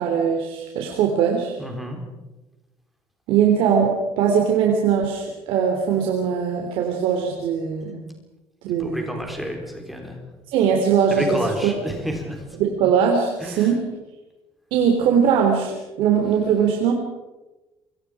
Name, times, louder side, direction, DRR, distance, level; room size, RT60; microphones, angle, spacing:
voice 1, 0.0-1.6 3.3-8.0 8.6-9.1 10.5-11.4 12.6-13.8 14.7-16.9, right 7 dB, 65° right, 1 dB, 3.6 m, -20 dB
voice 2, 1.6-2.0 8.8-10.2 11.1-12.4 13.4-13.8, equal, ahead, 1 dB, 4.0 m, -29 dB
27.5 x 24.0 x 5.1 m, 1.1 s
cardioid pair, 180°, 10 cm